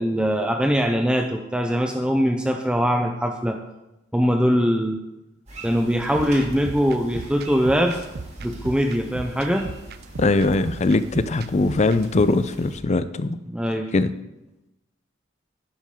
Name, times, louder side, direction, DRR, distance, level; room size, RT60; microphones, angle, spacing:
voice 1, 0.0-3.6 4.1-5.0 5.6-8.0 8.4-9.7 13.5-13.9, equal, 5° right, 4 dB, 0.6 m, -22 dB
sound 1, 5.5-12.8, right 1 dB, 35° right, 2.6 m, -43 dB
sound 2, 6.0-12.4, right 4 dB, 55° right, 0.5 m, -37 dB
voice 2, 10.2-13.4 13.9-14.1, left 3 dB, 35° left, 13 dB, 0.5 m, -21 dB
12.5 x 9.8 x 3.7 m, 0.95 s
head